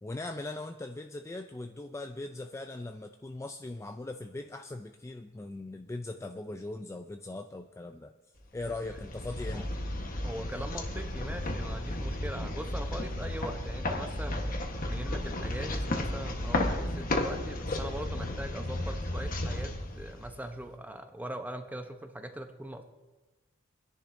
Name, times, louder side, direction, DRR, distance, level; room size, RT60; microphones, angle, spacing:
voice 1, 0.0-8.1 8.5-9.7, left 2 dB, 15° left, 6 dB, 0.3 m, -40 dB
sound 1, 8.6-20.6, left 1 dB, 45° left, 1.2 m, -33 dB
voice 2, 10.2-14.4 14.9-22.8, right 1 dB, 10° right, 6 dB, 0.7 m, -41 dB
22.5 x 10.5 x 2.6 m, 1.2 s
head